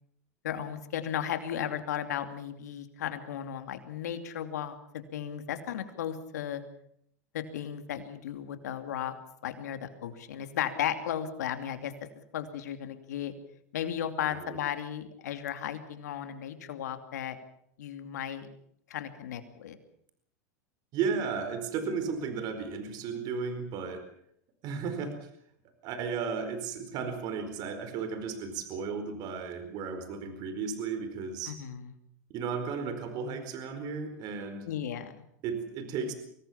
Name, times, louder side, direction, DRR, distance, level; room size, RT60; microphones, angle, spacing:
voice 1, 0.4-6.6 7.3-9.1 9.4-11.9 12.3-13.3 13.7-17.4 17.8-18.5 18.9-19.8 31.5-31.9 34.6-35.2, left 9 dB, 85° left, 8 dB, 2.7 m, -35 dB
voice 2, 14.2-14.6 20.9-24.0 24.6-25.3 25.8-31.5 32.3-34.7 35.4-36.1, right 5 dB, 50° right, 8 dB, 4.5 m, -34 dB
24.0 x 18.5 x 7.2 m, 0.71 s
hypercardioid pair, 110°, 9 cm